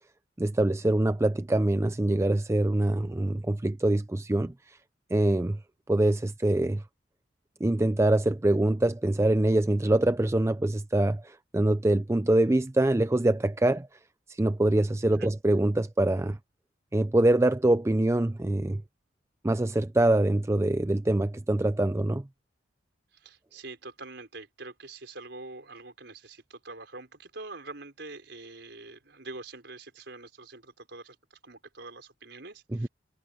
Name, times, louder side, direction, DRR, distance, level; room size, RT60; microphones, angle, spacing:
voice 1, 0.4-4.8 5.1-5.6 5.9-6.8 7.6-13.9 14.3-16.4 16.9-18.8 19.4-22.2 32.7-32.9, right 1 dB, 15° right, 0.4 m, -24 dB
voice 2, 23.1-32.9, right 3 dB, 60° right, 5.4 m, -45 dB
head